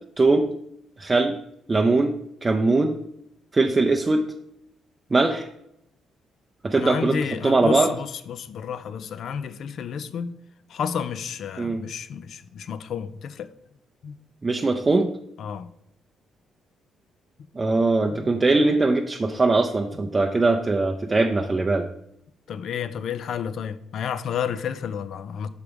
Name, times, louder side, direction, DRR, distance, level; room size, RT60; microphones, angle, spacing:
voice 1, 0.2-0.5 1.0-1.4 1.7-2.1 2.4-3.0 3.5-4.2 5.1-5.5 6.6-7.2 7.4-7.9 11.6-11.8 14.4-15.1 17.5-21.9, right 3 dB, 25° right, 0.5 m, -21 dB
voice 2, 6.7-10.4 10.7-13.5 14.0-14.1 15.4-15.7 18.1-18.3 22.5-25.5, left 7 dB, 65° left, 0.5 m, -31 dB
5.9 x 4.9 x 5.1 m
cardioid pair, 90°, 0 cm